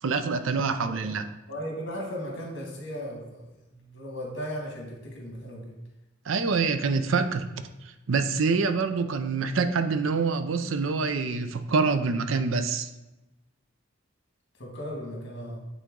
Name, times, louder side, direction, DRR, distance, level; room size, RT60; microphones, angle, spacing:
voice 1, 0.0-1.2 6.3-12.9, right 4 dB, 75° right, 9 dB, 0.5 m, -26 dB
voice 2, 1.5-5.8 14.6-15.6, equal, 60° left, -1 dB, 2.0 m, -37 dB
8.2 x 4.0 x 3.7 m, 1.0 s
head